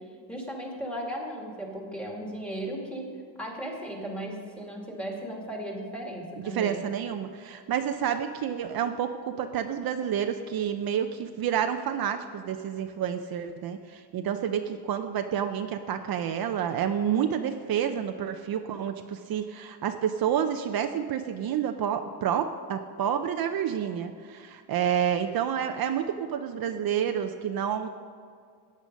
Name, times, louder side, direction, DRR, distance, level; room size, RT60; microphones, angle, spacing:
voice 1, 0.3-3.0 3.4-6.8, right 1 dB, 5° left, -1 dB, 2.2 m, -36 dB
voice 2, 6.4-27.9, right 9 dB, 60° right, 6 dB, 0.7 m, -29 dB
14.5 x 9.6 x 5.2 m, 2.2 s
cardioid pair, 160°, 42 cm